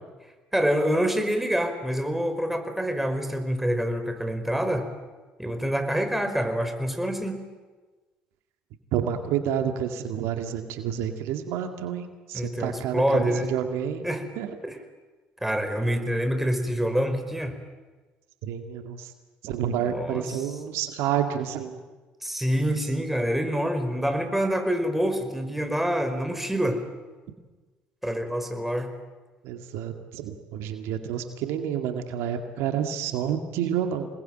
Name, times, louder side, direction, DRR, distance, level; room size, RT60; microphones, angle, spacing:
voice 1, 0.5-4.9 5.4-7.4 12.3-13.5 14.0-14.2 14.6-14.8 15.4-17.5 19.8-20.4 22.2-26.8 28.0-28.9, equal, 5° right, 7 dB, 5.1 m, -26 dB
voice 2, 8.9-14.0 14.4-14.6 18.4-19.1 19.4-21.8 29.4-34.1, right 9 dB, 75° right, 6 dB, 2.2 m, -29 dB
27.5 x 20.5 x 9.1 m, 1.3 s
hypercardioid pair, 60°, 5 cm